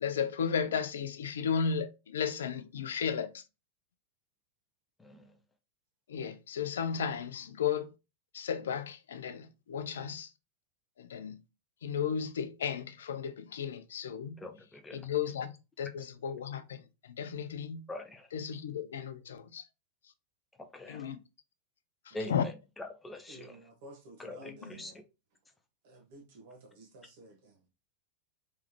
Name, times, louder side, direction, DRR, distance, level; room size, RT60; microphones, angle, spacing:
voice 1, 0.0-3.4 6.1-7.9 8.3-10.3 11.0-11.4 11.8-14.4 14.9-17.9 18.3-19.6 20.9-21.2 22.1-22.4 24.4-24.8, left 7 dB, 65° left, 0.5 m, -34 dB
voice 2, 5.0-5.3 14.4-15.1 17.9-18.3 20.7-21.0 22.1-23.6 24.2-24.9, left 1 dB, 10° left, 0.6 m, -44 dB
voice 3, 23.3-25.0 25.8-27.5, right 1 dB, 50° right, 0.9 m, -53 dB
3.4 x 3.2 x 2.9 m
figure-of-eight pair, 90°, 0 cm